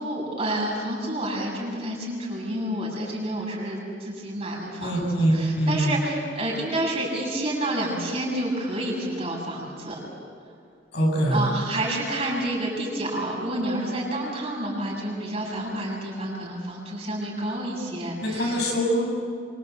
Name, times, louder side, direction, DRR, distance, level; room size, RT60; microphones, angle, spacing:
voice 1, 0.0-10.0 11.3-18.6, right 1 dB, 35° right, -2 dB, 7.7 m, -29 dB
voice 2, 4.8-5.9 10.9-11.5 18.2-19.0, equal, 65° left, -1 dB, 7.6 m, -23 dB
26.0 x 25.5 x 8.3 m, 2.3 s
head